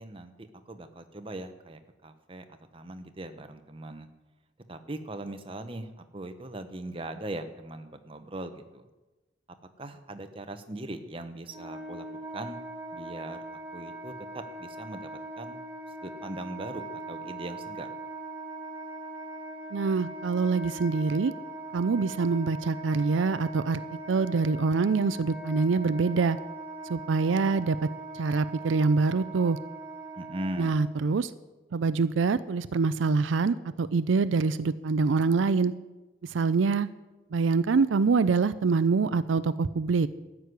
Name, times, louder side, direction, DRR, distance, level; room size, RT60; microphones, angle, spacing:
voice 1, 0.0-2.4 2.7-4.1 4.7-8.8 9.8-12.1 12.3-12.6 12.9-13.4 13.7-15.1 15.4-15.6 16.0-17.9 30.2-30.8, right 1 dB, 30° right, 8 dB, 0.9 m, -40 dB
Wind instrument woodwind instrument, 11.4-30.9, right 2 dB, 10° right, 2.1 m, -41 dB
voice 2, 19.7-21.3 21.7-23.8 24.1-26.4 26.9-27.8 28.1-29.6 30.6-31.3 31.7-35.7 36.3-36.9 37.3-40.1, right 4 dB, 85° right, 14 dB, 0.4 m, -25 dB
13.0 x 6.3 x 9.6 m, 1.1 s
head